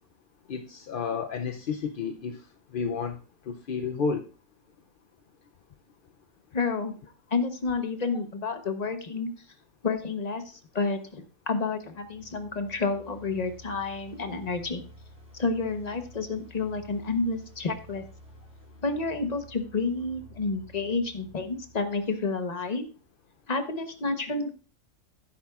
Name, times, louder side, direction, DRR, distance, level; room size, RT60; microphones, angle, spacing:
voice 1, 0.5-2.4 2.7-3.2 3.5-4.3, left 5 dB, 55° left, 6 dB, 0.6 m, -31 dB
voice 2, 6.5-6.9 7.3-9.3 9.8-14.8 15.4-18.0 18.8-22.9 23.5-24.5, left 4 dB, 35° left, 7 dB, 1.0 m, -30 dB
sound 1, 11.8-22.8, right 1 dB, 30° right, 4.1 m, -51 dB
11.5 x 10.0 x 2.4 m, 0.36 s
omnidirectional pair, 1.4 m